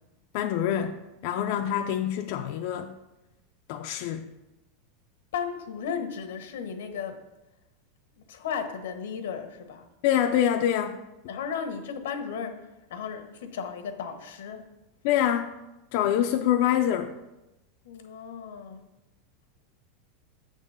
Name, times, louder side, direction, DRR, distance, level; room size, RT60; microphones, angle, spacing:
voice 1, 0.3-2.9 3.7-4.3 10.0-11.0 15.0-15.5 15.9-17.1, left 10 dB, 50° left, 5 dB, 0.3 m, -25 dB
voice 2, 5.3-7.2 8.1-9.9 11.3-14.6 17.8-18.8, left 7 dB, 90° left, 7 dB, 0.9 m, -35 dB
7.1 x 3.7 x 5.4 m, 0.96 s
supercardioid pair, 165°, 0 cm